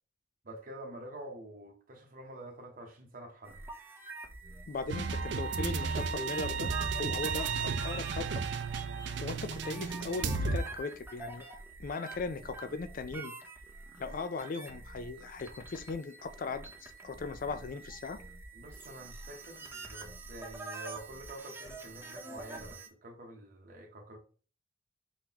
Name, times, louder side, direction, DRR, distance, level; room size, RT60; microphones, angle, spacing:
voice 1, 0.4-3.6 18.5-24.2, right 1 dB, 45° right, 0.8 m, -47 dB
sound 1, 3.4-22.9, right 3 dB, 10° right, 0.6 m, -46 dB
voice 2, 4.7-8.5 9.2-11.4 11.8-13.3 14.0-18.2, left 4 dB, 45° left, 0.4 m, -38 dB
sound 2, 4.9-10.6, right 4 dB, 65° right, 0.4 m, -33 dB
4.4 x 4.0 x 2.8 m
head